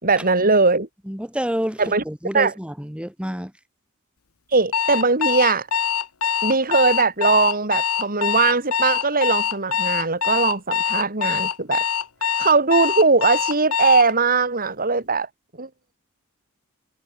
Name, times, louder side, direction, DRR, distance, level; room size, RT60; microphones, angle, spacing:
voice 1, 0.0-0.9 1.8-2.0 2.3-2.5 4.5-5.7 6.4-11.8 12.4-15.3 15.6-15.7, right 4 dB, 40° right, 4.0 m, -20 dB
voice 2, 1.1-3.5, equal, 5° right, 5.0 m, -28 dB
Alarm, 4.7-14.1, left 8 dB, 90° left, 1.3 m, -23 dB
head